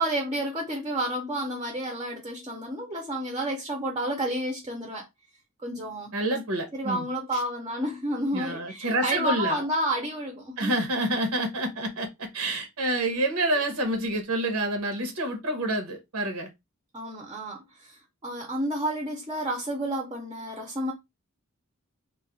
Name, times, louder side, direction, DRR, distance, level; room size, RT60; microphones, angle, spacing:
voice 1, 0.0-5.1 5.6-6.1 6.7-10.8 16.9-20.9, right 1 dB, 20° right, 0.6 m, -30 dB
voice 2, 6.1-7.1 8.3-9.7 10.6-16.5, right 1 dB, 80° right, 0.8 m, -28 dB
2.3 x 2.1 x 3.9 m
head